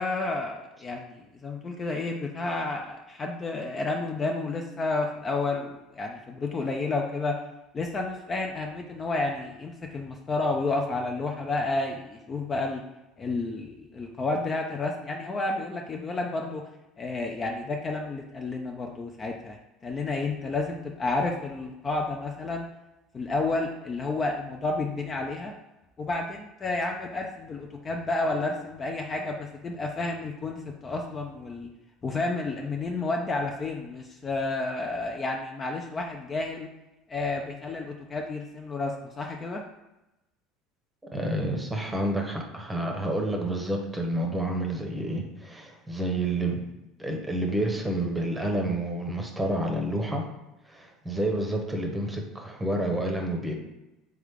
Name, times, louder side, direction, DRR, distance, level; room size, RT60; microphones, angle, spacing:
voice 1, 0.0-7.4 7.7-12.8 13.2-16.7 17.0-19.6 19.8-22.7 23.1-25.5 26.0-31.7 32.0-36.7 37.1-39.6, left 3 dB, 30° left, 2 dB, 0.5 m, -31 dB
voice 2, 41.1-46.6 47.0-50.3 50.6-53.5, right 1 dB, 15° right, 2 dB, 0.8 m, -29 dB
3.6 x 3.3 x 3.5 m, 0.95 s
hypercardioid pair, 85°, 0 cm